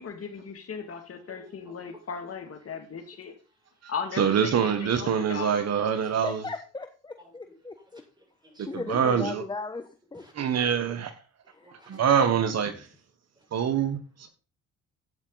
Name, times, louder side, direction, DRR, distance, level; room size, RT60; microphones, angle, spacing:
voice 1, 0.0-3.3 3.9-5.6, left 6 dB, 50° left, 5 dB, 2.4 m, -37 dB
voice 2, 1.3-1.8 7.2-7.3 7.8-7.9 8.2-8.8 10.1-10.3 11.4-12.0, right 1 dB, 15° right, 1 dB, 6.7 m, -55 dB
voice 3, 4.2-6.4 8.7-9.4 10.3-11.1 11.9-12.9 13.5-14.0, right 7 dB, 60° right, 10 dB, 1.4 m, -25 dB
voice 4, 6.0-8.0 8.7-10.2 11.5-11.7, left 3 dB, 15° left, 7 dB, 1.1 m, -37 dB
12.5 x 8.8 x 4.0 m, 0.34 s
cardioid pair, 90°, 30 cm